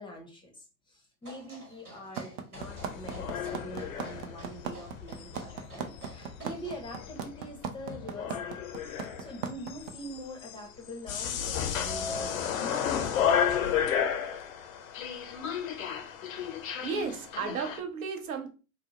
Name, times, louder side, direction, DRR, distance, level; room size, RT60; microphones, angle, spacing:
voice 1, 0.0-8.6 9.0-12.8, equal, 10° left, 0.6 m, -44 dB
sound 1, 1.2-6.8, right 2 dB, 90° right, 1.3 m, -51 dB
sound 2, 2.2-9.9, right 7 dB, 40° right, 0.4 m, -36 dB
sound 3, 2.6-17.8, left 8 dB, 65° left, 0.6 m, -33 dB
voice 2, 16.8-18.5, right 5 dB, 70° right, 0.7 m, -34 dB
2.7 x 2.0 x 3.0 m
figure-of-eight pair, 85°, 44 cm